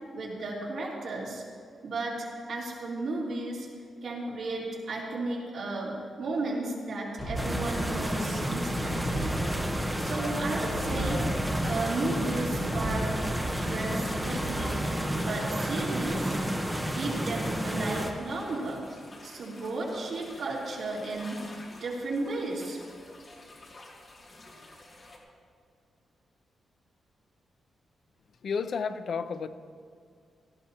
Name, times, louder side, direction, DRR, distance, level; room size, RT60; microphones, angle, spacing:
voice 1, 0.1-1.4 1.8-3.7 4.0-9.3 9.9-11.2 11.6-13.1 13.6-14.8 15.2-16.3 16.9-18.8 19.2-21.4 21.8-22.8, right 2 dB, 60° right, -5 dB, 3.6 m, -34 dB
sound 1, 7.2-16.0, right 1 dB, 20° left, 2.2 m, -37 dB
sound 2, 7.4-18.1, equal, 5° right, 1.1 m, -31 dB
sound 3, 7.9-25.2, left 2 dB, 35° left, 2.1 m, -50 dB
voice 2, 28.4-29.5, left 5 dB, 50° left, 10 dB, 0.6 m, -31 dB
18.0 x 15.0 x 3.0 m, 2.3 s
wide cardioid pair, 180°, 0 cm